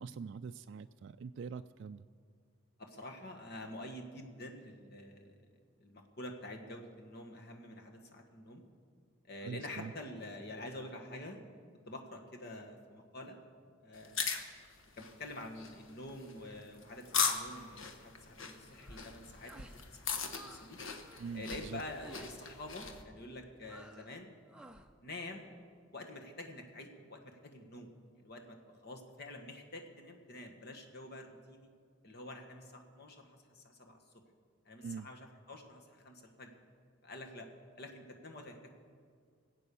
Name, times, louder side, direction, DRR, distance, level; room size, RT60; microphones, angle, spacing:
voice 1, 0.0-2.0 9.4-9.9 21.2-21.8 34.8-35.1, right 5 dB, 60° right, 9 dB, 0.3 m, -44 dB
voice 2, 2.8-5.4 5.8-8.6 9.2-11.4 11.9-13.4 13.8-14.3 14.9-20.8 21.3-24.3 25.0-25.4 25.9-27.9 28.2-31.7 32.0-34.0 34.6-36.5 37.0-37.5 37.8-38.8, left 1 dB, 50° left, 3 dB, 1.4 m, -47 dB
sound 1, 13.9-23.0, left 6 dB, 70° left, 1.1 m, -39 dB
sound 2, 18.7-19.1 19.4-19.8 20.1-20.7 20.9-21.3 22.0-22.3 22.8-23.1 23.6-24.1 24.5-24.9, right 1 dB, 5° right, 0.6 m, -55 dB
20.0 x 8.3 x 6.9 m, 2.1 s
head